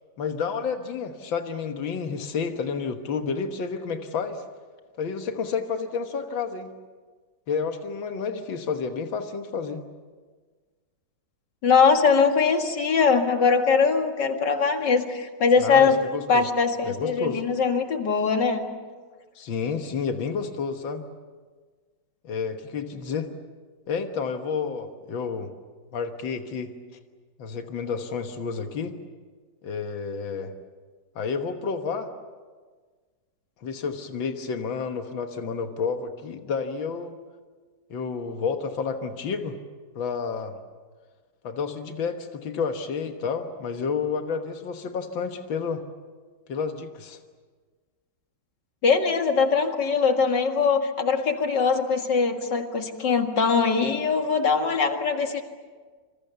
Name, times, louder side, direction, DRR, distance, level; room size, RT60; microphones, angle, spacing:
voice 1, 0.2-4.4 5.0-6.7 7.5-9.8 15.6-16.5 16.8-17.4 19.4-21.0 22.2-23.3 23.9-25.5 25.9-26.7 27.4-29.0 29.6-30.5 31.2-32.1 33.6-37.2 37.9-39.6 40.0-40.6 41.4-45.8 46.5-47.2, left 5 dB, 85° left, 6 dB, 2.1 m, -30 dB
voice 2, 11.6-16.0 16.3-18.6 48.8-55.4, left 5 dB, 65° left, 5 dB, 2.6 m, -21 dB
27.0 x 26.5 x 6.9 m, 1.5 s
omnidirectional pair, 2.1 m